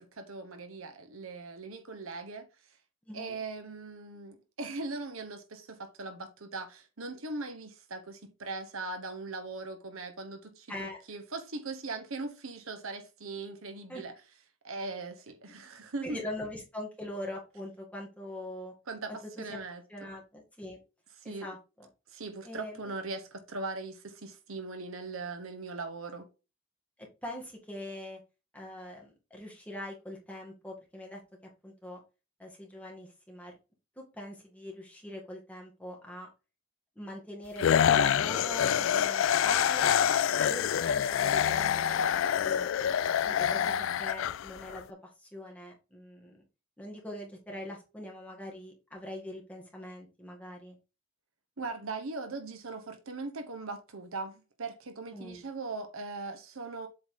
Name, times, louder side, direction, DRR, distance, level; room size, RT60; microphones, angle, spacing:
voice 1, 0.0-2.5 3.1-14.1 14.6-16.2 18.9-19.1 19.4-20.1 21.2-21.5 22.1-26.3 51.6-56.9, right 3 dB, 70° right, 1.1 m, -40 dB
voice 2, 3.1-3.4 10.7-11.0 13.9-14.0 15.5-18.7 19.1-19.6 19.9-20.8 21.2-21.9 22.4-22.9 27.2-28.2 28.5-31.2 31.6-32.0 32.4-33.6 34.0-36.3 36.9-39.9 40.4-42.7 43.2-46.4 46.8-50.8 55.1-55.4, left 1 dB, 5° left, 1.8 m, -43 dB
sound 1, 37.6-44.8, left 9 dB, 60° left, 0.3 m, -26 dB
7.7 x 4.0 x 3.7 m
head